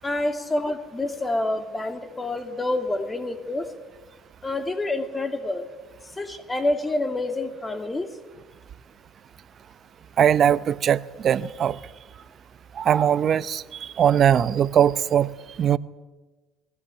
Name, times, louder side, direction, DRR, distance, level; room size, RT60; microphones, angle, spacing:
voice 1, 0.0-3.7 4.4-5.7 6.2-8.1, left 2 dB, 20° left, 2.6 m, -27 dB
voice 2, 10.2-11.8 12.8-15.3 15.6-15.8, right 9 dB, 50° right, 0.8 m, -20 dB
20.0 x 17.0 x 9.2 m
supercardioid pair, 95°, 0 cm